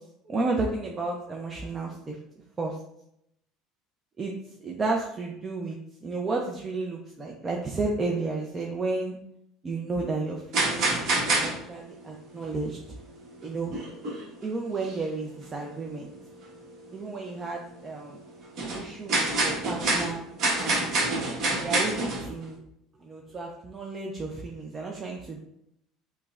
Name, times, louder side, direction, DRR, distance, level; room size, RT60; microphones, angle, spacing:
voice 1, 0.2-2.2 2.6-2.8 4.2-4.3 4.6-9.2 9.6-11.0 11.3-12.8 13.4-13.8 14.4-16.1 16.9-18.2 18.7-20.2 20.6-20.9 21.6-22.6 23.0-25.4, right 3 dB, 25° right, 0 dB, 0.4 m, -32 dB
sound 1, 10.5-11.8 12.0-12.5 13.2-13.3 13.7-14.4 14.8-15.0 15.5-15.6 15.9-16.0 16.7-16.9 17.5-17.7 18.1-22.5, right 2 dB, 55° right, 1.1 m, -27 dB
5.5 x 2.1 x 2.4 m, 0.76 s
cardioid pair, 125°, 0 cm